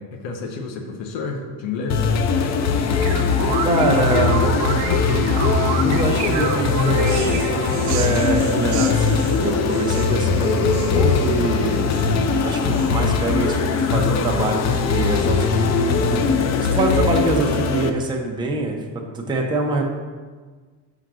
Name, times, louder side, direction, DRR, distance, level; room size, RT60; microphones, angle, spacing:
voice 1, 0.0-2.2, left 4 dB, 75° left, 3 dB, 0.9 m, -30 dB
sound 1, 1.9-17.9, left 5 dB, 40° left, 0.4 m, -20 dB
sound 2, 2.7-8.0, right 6 dB, 85° right, 0.9 m, -28 dB
voice 2, 3.6-4.4 5.8-11.9 12.4-13.6 13.9-16.2 16.7-19.9, right 2 dB, 10° right, -1 dB, 0.6 m, -24 dB
sound 3, 7.0-13.2, right 10 dB, 55° right, 0.5 m, -37 dB
5.7 x 3.9 x 6.1 m, 1.5 s
cardioid pair, 150°, 44 cm